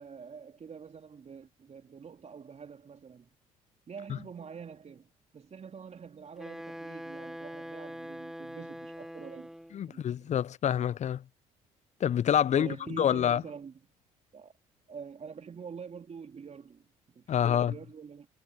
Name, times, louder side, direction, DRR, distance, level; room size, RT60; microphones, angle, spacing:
voice 1, 0.0-3.3 3.9-9.5 9.9-10.3 12.5-13.8 14.3-14.5 14.9-16.8 17.1-18.3, right 6 dB, 40° right, 2.8 m, -46 dB
Wind instrument woodwind instrument, 6.4-9.8, equal, ahead, 2.9 m, -43 dB
voice 2, 9.7-11.2 12.0-13.4 17.3-17.7, left 9 dB, 40° left, 0.6 m, -27 dB
hypercardioid pair, 50°, 17 cm